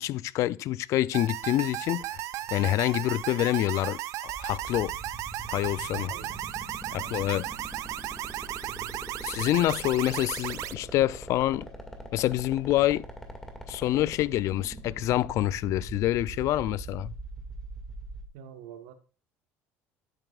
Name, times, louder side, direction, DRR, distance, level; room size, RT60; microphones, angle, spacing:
voice 1, 0.0-2.1 2.5-4.9 5.5-6.2 6.9-7.5 9.2-11.7 12.1-13.0 13.7-17.1, left 15 dB, 65° left, 0.4 m, -27 dB
sound 1, 1.1-10.7, right 14 dB, 65° right, 0.5 m, -35 dB
sound 2, 4.2-18.3, right 1 dB, 10° left, 2.0 m, -41 dB
voice 2, 5.9-6.5 6.8-7.3 8.7-9.5 18.3-18.9, right 10 dB, 90° right, 1.2 m, -47 dB
11.0 x 9.1 x 2.4 m
cardioid pair, 105°, 6 cm